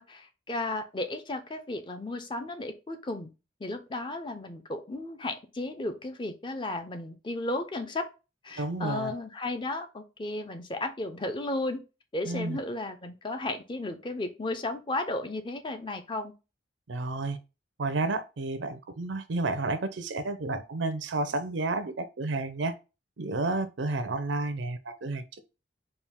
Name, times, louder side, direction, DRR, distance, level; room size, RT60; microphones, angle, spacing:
voice 1, 0.0-3.3 3.6-8.1 8.4-11.8 12.1-16.3, left 2 dB, 25° left, 0.5 m, -34 dB
voice 2, 8.6-9.1 12.3-12.6 16.9-17.4 17.8-22.7 23.2-25.2, right 2 dB, 80° right, 0.6 m, -31 dB
4.4 x 2.4 x 3.5 m
head